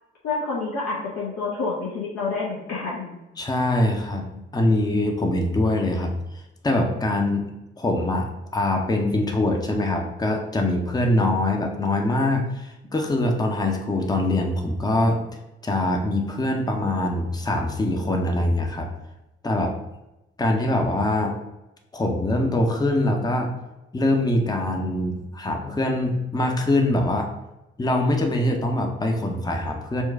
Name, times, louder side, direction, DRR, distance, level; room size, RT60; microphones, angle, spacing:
voice 1, 0.2-3.2, left 3 dB, 60° left, -5 dB, 0.9 m, -28 dB
voice 2, 3.4-6.1 6.6-7.5 7.8-15.2 15.6-18.9 19.4-19.8 20.4-21.4 21.9-23.5 23.9-27.3 27.8-30.0, left 1 dB, 15° left, 2 dB, 0.8 m, -23 dB
4.4 x 2.3 x 4.6 m, 0.96 s
hypercardioid pair, 40°, 29 cm